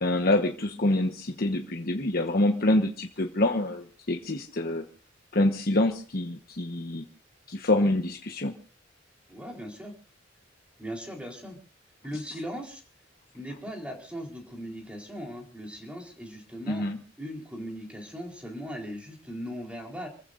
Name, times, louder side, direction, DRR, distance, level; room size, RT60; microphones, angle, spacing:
voice 1, 0.0-4.8 5.3-7.0 7.5-8.6 16.7-17.0, left 1 dB, 50° left, 3 dB, 1.2 m, -26 dB
voice 2, 9.3-9.9 10.8-11.6 12.0-12.8 13.3-16.8 17.2-20.1, equal, 5° right, 1 dB, 4.0 m, -38 dB
28.5 x 15.0 x 2.6 m, 0.39 s
head